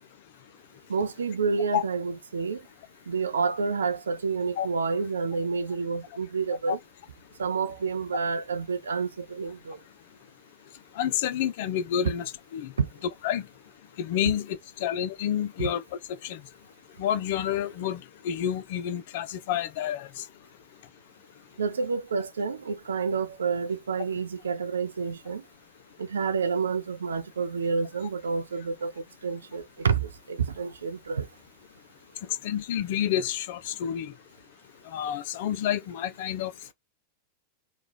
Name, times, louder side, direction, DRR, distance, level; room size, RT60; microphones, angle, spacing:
voice 1, 0.9-2.6 3.1-6.8 7.4-9.8 12.8-12.9 15.6-15.7 21.6-25.4 26.0-31.3, right 5 dB, 70° right, 0.5 m, -29 dB
voice 2, 11.0-12.7 13.2-13.4 14.0-15.8 16.2-16.4 17.0-20.1 32.4-34.1 34.9-36.5, left 10 dB, 50° left, 0.5 m, -29 dB
3.1 x 2.3 x 3.9 m
figure-of-eight pair, 90°, 0 cm